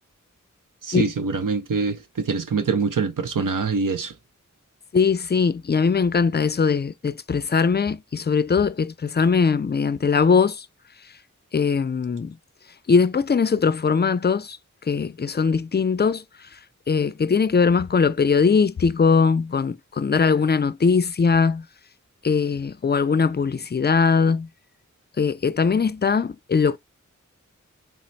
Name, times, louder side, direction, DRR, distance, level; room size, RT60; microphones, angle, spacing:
voice 1, 0.8-4.1, right 5 dB, 80° right, 0.7 m, -24 dB
voice 2, 4.9-10.7 11.5-12.4 12.9-14.6 14.9-16.5 16.9-21.6 22.2-24.5 25.2-26.8, left 5 dB, 35° left, 0.4 m, -21 dB
4.3 x 2.0 x 4.0 m
wide cardioid pair, 40°, 32 cm